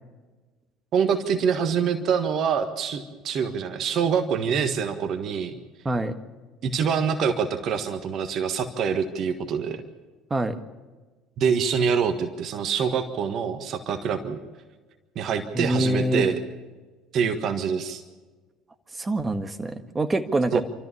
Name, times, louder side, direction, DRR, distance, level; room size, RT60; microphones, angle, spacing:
voice 1, 0.9-5.6 6.6-9.8 11.4-14.4 15.1-16.4 17.1-18.0 20.5-20.6, right 6 dB, 50° right, 8 dB, 1.5 m, -25 dB
voice 2, 15.5-16.3 18.9-20.6, right 1 dB, 20° right, 9 dB, 1.6 m, -25 dB
28.0 x 13.5 x 7.2 m, 1.3 s
figure-of-eight pair, 60°, 0 cm